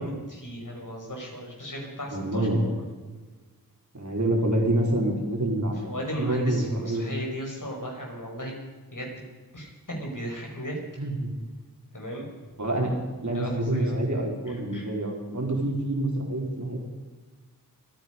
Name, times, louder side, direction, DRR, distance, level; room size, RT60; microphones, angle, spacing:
voice 1, 0.0-2.7 5.9-8.6 8.9-9.2 9.5-10.8 11.9-12.3 13.3-14.0 14.5-14.9, equal, 60° left, -1 dB, 5.4 m, -35 dB
voice 2, 2.1-2.6 3.9-5.8 6.2-7.0 11.0-11.3 12.6-16.8, right 1 dB, 50° right, -1 dB, 4.1 m, -27 dB
26.0 x 9.4 x 5.3 m, 1.3 s
wide cardioid pair, 55°, 36 cm